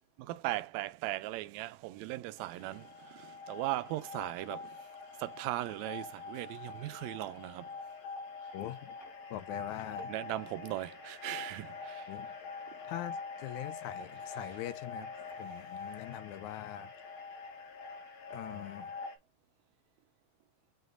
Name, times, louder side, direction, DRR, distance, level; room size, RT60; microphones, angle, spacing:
voice 1, 0.2-4.8 5.2-7.7 10.1-12.1, right 16 dB, 80° right, 1.8 m, -38 dB
sound 1, 2.4-19.2, left 4 dB, 65° left, 3.0 m, -45 dB
voice 2, 8.5-8.9 9.3-10.1 12.1-12.3 12.9-15.1 15.4-16.9 18.3-18.9, left 12 dB, 80° left, 2.2 m, -42 dB
7.9 x 5.0 x 2.6 m
omnidirectional pair, 3.4 m